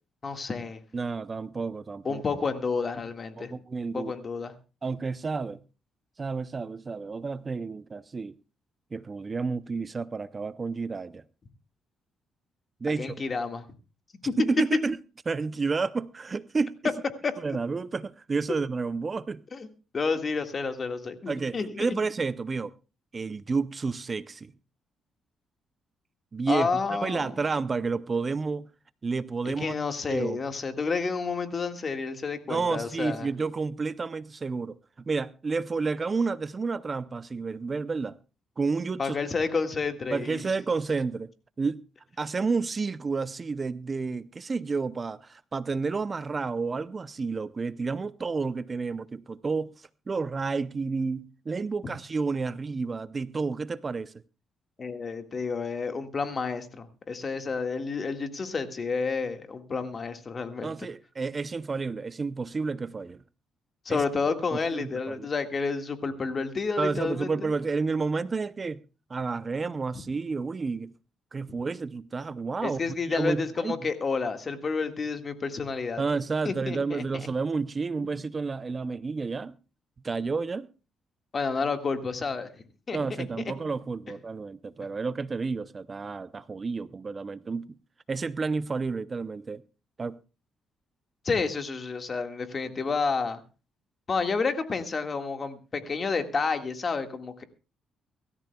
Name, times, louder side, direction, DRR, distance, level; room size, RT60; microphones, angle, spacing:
voice 1, 0.2-0.8 2.0-3.5 3.9-4.5 12.8-13.6 14.2-14.3 17.2-17.3 19.5-19.7 19.9-22.0 26.5-27.4 29.4-33.3 39.0-40.4 54.8-60.7 63.8-67.5 72.6-76.0 76.4-77.0 81.3-83.0 91.2-93.4 94.1-97.4, left 4 dB, 40° left, 1.8 m, -30 dB
voice 2, 0.9-2.2 3.4-4.1 4.8-5.6 6.2-8.3 8.9-11.2 12.8-13.2 14.4-15.0 15.3-16.8 17.4-19.4 21.3-22.7 23.1-24.5 26.3-28.7 29.0-29.8 30.1-30.4 32.5-38.1 38.6-39.2 40.1-41.3 41.6-41.8 42.2-54.1 60.6-63.2 63.9-64.0 64.5-65.3 66.8-68.8 69.1-70.9 71.3-73.8 76.0-79.5 80.0-80.7 82.9-87.7 88.1-89.6 90.0-90.2, right 4 dB, 35° right, 0.6 m, -30 dB
24.0 x 13.5 x 2.3 m
cardioid pair, 90°, 0 cm